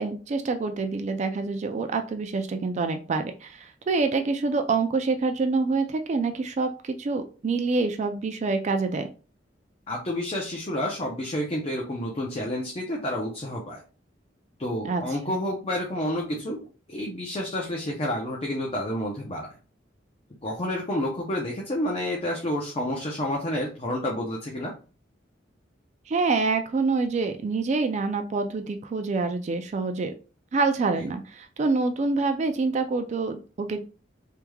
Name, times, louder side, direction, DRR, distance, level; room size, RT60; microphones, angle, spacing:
voice 1, 0.0-9.1 14.8-15.0 26.1-30.1 30.5-33.8, right 3 dB, 40° right, 7 dB, 0.3 m, -26 dB
voice 2, 9.9-13.8 14.6-16.6 16.9-19.5 20.4-24.7, left 1 dB, 35° left, -1 dB, 0.6 m, -29 dB
3.4 x 3.1 x 2.2 m, 0.35 s
head